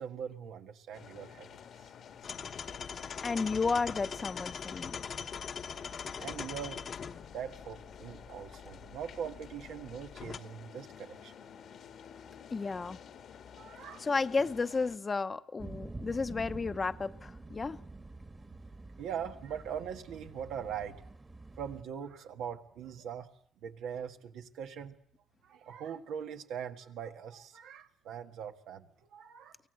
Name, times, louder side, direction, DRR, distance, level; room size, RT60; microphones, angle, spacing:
voice 1, 0.0-1.5 5.6-6.8 7.3-11.3 13.5-14.1 19.0-21.0 21.6-23.3 23.6-24.9 25.4-29.6, right 8 dB, 85° right, 1.6 m, -42 dB
sound 1, 0.9-15.0, left 8 dB, 70° left, 1.7 m, -52 dB
sound 2, 2.2-10.4, left 6 dB, 55° left, 1.2 m, -42 dB
voice 2, 3.2-5.0 12.5-13.0 14.0-17.8, left 4 dB, 30° left, 0.9 m, -32 dB
sound 3, 15.6-21.8, right 2 dB, 20° right, 1.5 m, -47 dB
24.0 x 17.0 x 7.9 m
cardioid pair, 90°, 0 cm